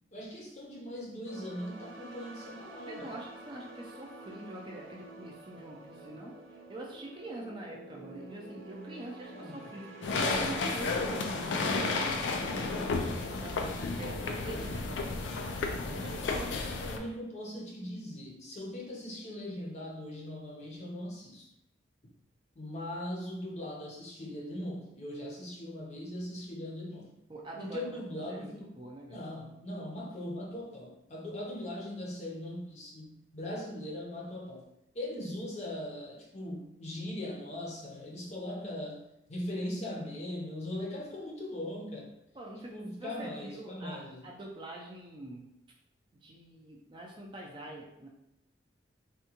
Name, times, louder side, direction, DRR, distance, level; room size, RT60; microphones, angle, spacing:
voice 1, 0.1-3.1 9.3-9.7 16.8-21.5 22.5-27.1 27.6-28.7 29.1-34.7 34.9-39.0 39.3-42.1 42.7-44.3, left 1 dB, 35° left, -1 dB, 0.6 m, -40 dB
sound 1, 1.2-12.0, right 2 dB, 85° right, 0.5 m, -49 dB
voice 2, 2.9-11.9 12.5-15.3 15.9-16.9 27.3-28.0 28.3-29.2 42.3-45.5 46.1-48.1, right 1 dB, 25° right, -1 dB, 0.4 m, -45 dB
sound 2, 10.0-17.0, left 3 dB, 80° left, 0.4 m, -32 dB
3.5 x 2.2 x 2.9 m, 0.81 s
head